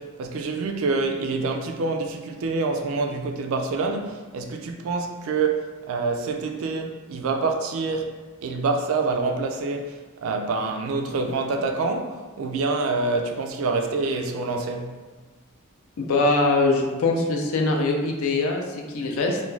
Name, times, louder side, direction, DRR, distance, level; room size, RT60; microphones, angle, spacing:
voice 1, 0.0-8.1 8.4-9.9 10.2-14.9, right 3 dB, 70° right, 0.3 m, -26 dB
voice 2, 16.0-19.4, left 3 dB, 75° left, 0.4 m, -22 dB
2.4 x 2.2 x 3.1 m
head